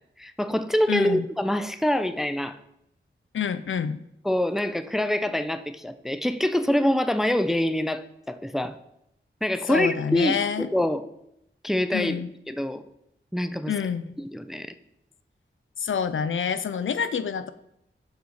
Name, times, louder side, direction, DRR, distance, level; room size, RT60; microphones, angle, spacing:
voice 1, 0.2-2.6 4.2-8.8 9.4-11.1 11.6-12.8 13.3-13.7 14.2-14.7, left 1 dB, ahead, 11 dB, 0.3 m, -25 dB
voice 2, 0.9-1.2 3.3-4.0 9.7-10.7 11.9-12.3 13.7-14.0 15.8-17.5, left 7 dB, 70° left, 13 dB, 0.4 m, -27 dB
6.5 x 4.7 x 3.9 m, 0.79 s
wide cardioid pair, 80°, 21 cm